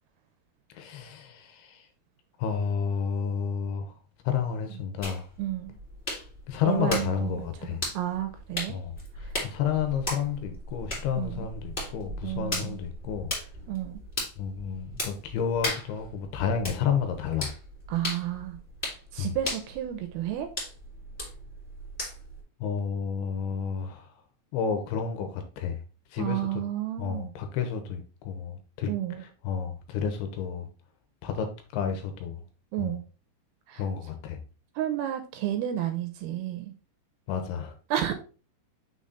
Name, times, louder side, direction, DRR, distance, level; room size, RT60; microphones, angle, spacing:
voice 1, 0.7-1.8 2.4-3.9 4.2-5.2 6.5-7.8 8.7-13.3 14.4-17.5 19.2-19.4 22.6-24.1 24.5-25.8 26.1-26.5 27.0-28.9 29.2-30.7 31.2-31.5 31.7-32.4 32.8-32.9 33.8-34.4 37.3-37.7, left 7 dB, 80° left, 2.7 m, -31 dB
sound 1, 5.0-22.4, left 1 dB, 20° left, 1.6 m, -37 dB
voice 2, 5.4-5.8 6.6-8.8 11.1-11.5 12.2-12.8 13.7-14.0 17.9-18.6 19.1-20.5 26.2-27.3 28.9-29.2 32.7-33.0 33.7-33.8 34.8-36.7 37.9-38.1, right 11 dB, 80° right, 2.3 m, -31 dB
6.3 x 3.8 x 4.0 m
omnidirectional pair, 4.8 m